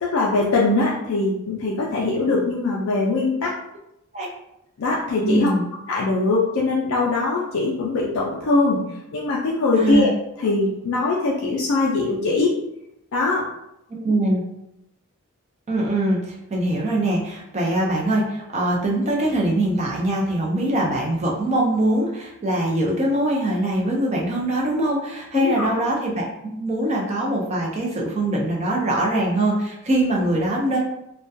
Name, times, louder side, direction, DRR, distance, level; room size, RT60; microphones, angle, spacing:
voice 1, 0.0-3.5 4.8-5.5 5.9-8.8 9.1-10.1 10.4-12.6 13.1-13.5 25.3-25.7, left 3 dB, 60° left, -4 dB, 0.4 m, -21 dB
voice 2, 5.2-5.6 9.8-10.1 13.9-14.4 15.7-26.3 26.6-30.8, right 1 dB, 30° right, -2 dB, 0.4 m, -22 dB
2.2 x 2.1 x 2.6 m, 0.83 s
head